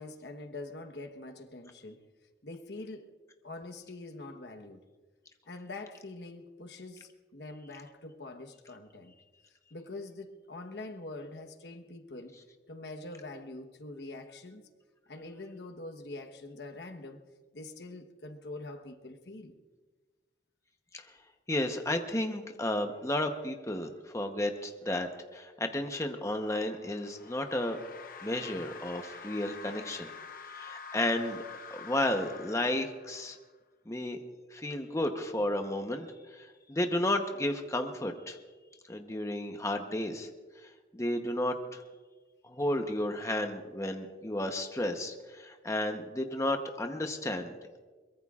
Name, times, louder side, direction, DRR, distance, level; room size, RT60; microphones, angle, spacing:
voice 1, 0.0-2.1 2.4-3.1 3.4-4.8 5.5-9.1 9.7-12.4 12.7-14.6 15.1-17.2 17.5-19.5, left 2 dB, 70° left, 1.1 m, -44 dB
voice 2, 21.5-27.8 28.2-30.1 30.5-31.4 31.7-33.4 33.9-34.2 34.5-36.1 36.3-38.4 38.9-40.3 40.9-41.8 42.4-47.5, left 1 dB, 15° left, 0.9 m, -32 dB
sound 1, 26.4-33.5, left 5 dB, 50° left, 0.8 m, -47 dB
23.0 x 22.0 x 2.4 m
head